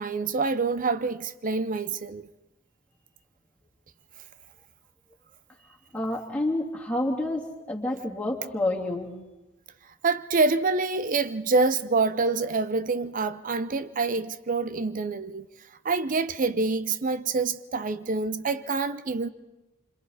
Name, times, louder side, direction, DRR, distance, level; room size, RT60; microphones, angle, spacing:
voice 1, 0.0-2.3 10.0-15.5 15.8-19.3, right 3 dB, 45° right, 0.7 m, -26 dB
voice 2, 5.9-9.1, left 1 dB, 10° left, 3.0 m, -29 dB
27.0 x 26.5 x 4.1 m
head